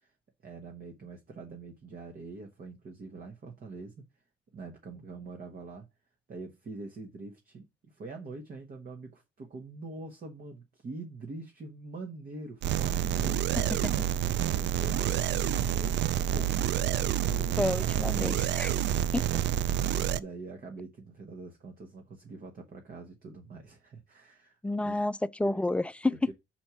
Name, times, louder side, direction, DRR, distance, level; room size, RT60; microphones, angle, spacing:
voice 1, 0.4-4.0 4.5-5.9 6.3-13.4 14.4-16.0 16.3-16.7 17.0-19.0 19.8-25.0 25.4-25.6 26.1-26.3, right 3 dB, 45° right, 1.1 m, -44 dB
sound 1, 12.6-20.2, right 10 dB, 65° right, 0.4 m, -28 dB
voice 2, 13.7-14.1 17.6-18.7 19.1-19.4 24.6-26.3, left 2 dB, 5° left, 0.3 m, -30 dB
4.5 x 4.4 x 5.7 m
cardioid pair, 90°, 20 cm